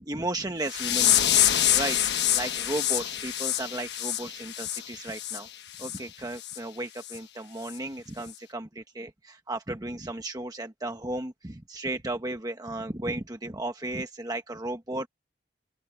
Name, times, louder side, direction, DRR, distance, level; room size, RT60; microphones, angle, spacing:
voice 1, 0.0-2.0 2.3-5.5 5.8-15.1, right 2 dB, 20° right, 1.1 m, -35 dB
sound 1, 0.7-5.4 5.8-6.0 6.4-6.6 7.1-7.2 7.7-7.8, left 11 dB, 70° left, 1.4 m, -26 dB
open air
head